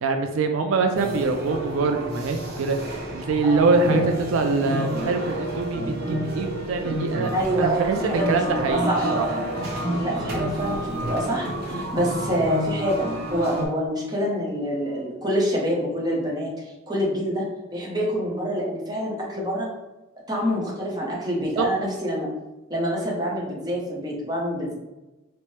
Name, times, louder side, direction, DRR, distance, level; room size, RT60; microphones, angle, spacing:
voice 1, 0.0-2.8 3.1-7.3 7.6-9.3 21.6-21.7, right 3 dB, 75° right, 5 dB, 0.4 m, -24 dB
sound 1, 0.9-13.7, right 1 dB, 50° right, 0.8 m, -29 dB
voice 2, 7.3-9.1 10.0-17.4 17.7-19.7 20.3-22.3 22.7-24.7, equal, 20° right, -4 dB, 0.7 m, -26 dB
4.4 x 2.0 x 3.1 m, 1.0 s
head